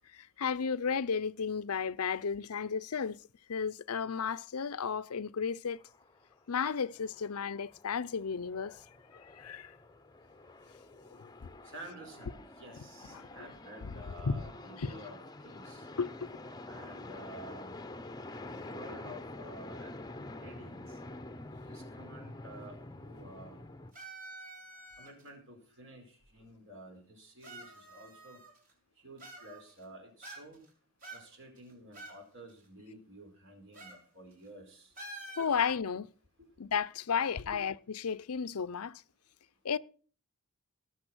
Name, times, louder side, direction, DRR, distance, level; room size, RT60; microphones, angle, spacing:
voice 1, 0.1-3.2 3.5-5.8 6.5-8.8 9.2-9.7 11.1-11.5 13.1-13.3 13.9-14.0 14.2-14.5 14.8-14.9 16.0-16.3 35.4-36.1 36.6-39.0 39.6-39.8, left 6 dB, 90° left, 0.6 m, -33 dB
sound 1, 5.8-6.7 7.0-23.9, left 2 dB, 20° left, 0.7 m, -47 dB
voice 2, 11.6-15.9 16.7-17.8 18.6-20.0 20.3-21.0 21.7-23.6 25.0-28.4 29.0-30.6 31.1-34.9 37.4-37.6, right 1 dB, 60° right, 4.8 m, -51 dB
sound 2, 23.9-25.3 26.2-26.3 27.4-28.7 29.2-29.8 30.2-30.7 31.0-32.2 32.5-32.6 33.7-34.0 34.3-34.5 34.9-35.6, right 2 dB, 40° right, 5.9 m, -48 dB
18.5 x 7.0 x 6.2 m
head